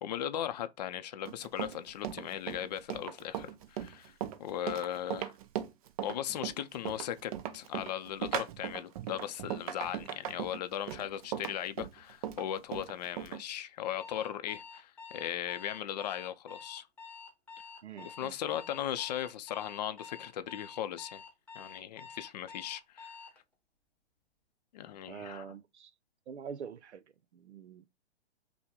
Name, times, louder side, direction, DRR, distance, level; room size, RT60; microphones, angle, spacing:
voice 1, 0.0-4.1 4.4-5.3 6.0-16.9 18.0-21.2 21.5-23.1 24.7-25.5, left 10 dB, 40° left, 0.5 m, -38 dB
Run, 1.3-13.4, right 11 dB, 35° right, 0.5 m, -38 dB
Alarm, 14.0-23.4, left 5 dB, 5° left, 1.0 m, -49 dB
voice 2, 17.8-18.8 25.1-25.9 26.3-27.0 27.3-27.9, right 7 dB, 85° right, 0.6 m, -45 dB
5.7 x 2.2 x 3.6 m
hypercardioid pair, 130°, 33 cm